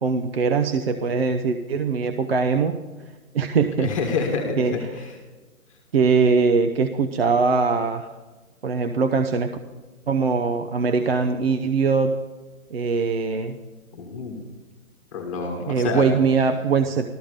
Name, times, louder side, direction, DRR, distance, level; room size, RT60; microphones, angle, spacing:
voice 1, 0.0-2.8 3.3-3.9 4.6-4.8 5.9-8.1 8.6-9.6 10.1-12.2 12.7-13.6 15.6-17.1, right 5 dB, 45° right, 7 dB, 0.8 m, -21 dB
voice 2, 3.8-5.2 13.9-14.4 15.1-16.1, left 4 dB, 25° left, 1 dB, 1.8 m, -28 dB
14.5 x 13.5 x 5.1 m, 1.3 s
hypercardioid pair, 175°, 41 cm